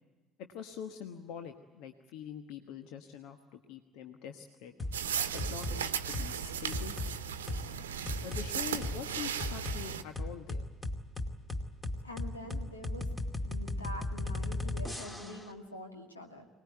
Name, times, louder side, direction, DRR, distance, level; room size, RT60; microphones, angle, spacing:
voice 1, 0.4-4.7 5.3-6.9 8.2-10.7, left 8 dB, 65° left, 6 dB, 1.3 m, -44 dB
sound 1, 4.8-5.0 5.4-5.8 6.1-6.3 6.7-7.1 7.5-7.6 8.1-8.5 8.8-9.0 9.4-9.8 10.2-15.5, left 2 dB, 15° left, 2.3 m, -35 dB
sound 2, 4.9-10.0, right 8 dB, 75° right, 0.9 m, -36 dB
voice 2, 12.0-13.1 13.5-16.5, left 1 dB, 85° left, 4 dB, 2.2 m, -45 dB
24.5 x 19.5 x 9.3 m, 1.2 s
figure-of-eight pair, 55°, 0 cm